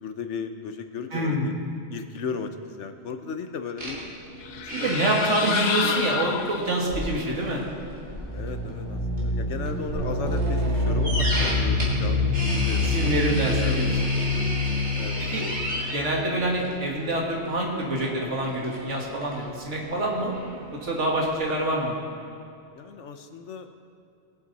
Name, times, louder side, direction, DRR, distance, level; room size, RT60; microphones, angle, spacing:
voice 1, 0.0-1.5 1.9-4.0 4.6-5.1 5.4-5.6 5.8-6.1 8.3-12.3 12.7-13.8 14.4-14.5 14.9-15.6 22.7-23.7, left 6 dB, 75° left, 8 dB, 1.1 m, -35 dB
voice 2, 1.1-1.6 4.7-7.6 12.8-14.1 15.3-15.5 15.9-20.3 20.8-22.0, right 1 dB, 80° right, -1 dB, 2.3 m, -26 dB
sound 1, 3.8-21.9, equal, 65° right, 3.1 m, -35 dB
sound 2, 4.4-7.0, left 7 dB, 60° left, 0.5 m, -30 dB
sound 3, 8.2-16.9, left 2 dB, 10° left, 1.7 m, -26 dB
20.0 x 8.1 x 4.1 m, 2.5 s
omnidirectional pair, 1.2 m